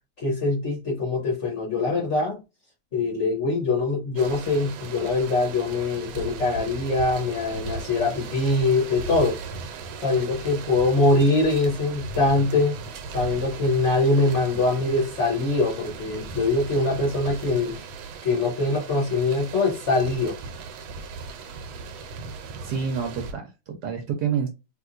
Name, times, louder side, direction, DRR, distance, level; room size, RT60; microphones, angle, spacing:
voice 1, 0.2-2.4 2.9-9.4 10.0-12.8 13.1-17.8 18.2-20.4, left 2 dB, 55° left, 0.8 m, -23 dB
sound 1, 4.2-23.3, right 4 dB, 90° right, 1.5 m, -37 dB
voice 2, 22.6-24.5, right 7 dB, 70° right, 1.0 m, -28 dB
3.4 x 2.9 x 2.5 m
omnidirectional pair, 2.2 m